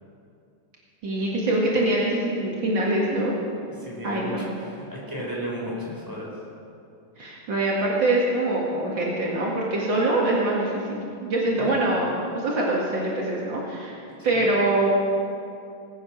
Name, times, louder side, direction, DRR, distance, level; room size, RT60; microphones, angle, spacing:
voice 1, 1.0-3.3 4.0-4.5 7.2-13.9 14.2-14.9, right 2 dB, 65° right, -4 dB, 2.5 m, -24 dB
voice 2, 3.8-6.3 11.6-11.8 14.2-14.5, equal, 10° right, -5 dB, 4.1 m, -34 dB
20.0 x 9.0 x 6.1 m, 2.5 s
omnidirectional pair, 2.3 m